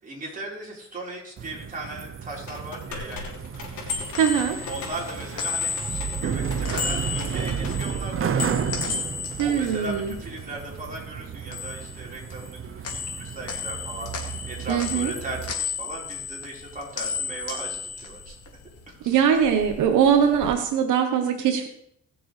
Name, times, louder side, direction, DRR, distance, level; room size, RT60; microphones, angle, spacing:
voice 1, 0.0-3.6 4.6-8.7 9.4-12.8 13.1-14.1 14.5-18.3 18.9-19.2, right 2 dB, 25° right, -4 dB, 4.5 m, -37 dB
sound 1, 1.4-15.5, right 7 dB, 45° right, 0.8 m, -32 dB
sound 2, 2.5-7.9, left 4 dB, 75° left, 3.3 m, -41 dB
sound 3, 3.6-10.9 11.2-12.6 12.8-18.8 19.2-20.5, left 6 dB, 55° left, 2.5 m, -34 dB
voice 2, 4.1-4.6 9.4-10.1 14.7-15.1 19.1-21.7, right 8 dB, 85° right, 5 dB, 1.1 m, -21 dB
20.5 x 6.9 x 3.3 m, 0.71 s
cardioid pair, 90°, 30 cm